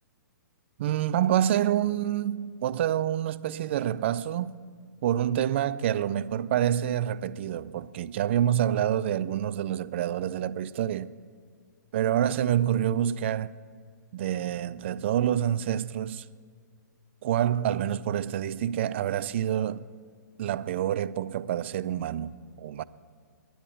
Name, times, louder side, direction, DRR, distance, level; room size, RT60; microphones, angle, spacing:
voice 1, 0.8-4.6 5.0-11.1 11.9-13.5 14.1-16.2 17.2-19.8 20.4-22.8, right 10 dB, 35° right, 0.4 m, -27 dB
10.0 x 9.9 x 9.2 m
hypercardioid pair, 160°, 10 cm